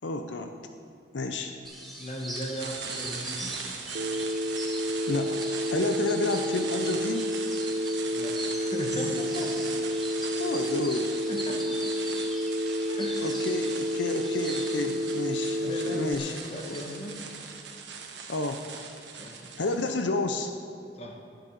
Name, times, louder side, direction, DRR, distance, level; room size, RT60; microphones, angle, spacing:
voice 1, 0.0-0.5 1.1-1.6 5.1-7.3 10.4-11.1 13.2-16.4 16.6-16.8 18.3-18.7 19.6-20.5, left 2 dB, 85° left, 6 dB, 0.7 m, -30 dB
sound 1, 1.6-17.6, right 1 dB, ahead, 1.9 m, -42 dB
voice 2, 2.0-3.5 8.1-9.5 11.3-11.8 12.9-13.3 15.6-17.2 19.2-19.6 20.9-21.2, equal, 35° left, 1 dB, 1.5 m, -37 dB
sound 2, 2.3-20.0, right 6 dB, 80° right, 1.3 m, -40 dB
Telephone, 3.9-16.1, equal, 60° right, 0.6 m, -30 dB
11.0 x 10.5 x 6.6 m, 2.4 s
head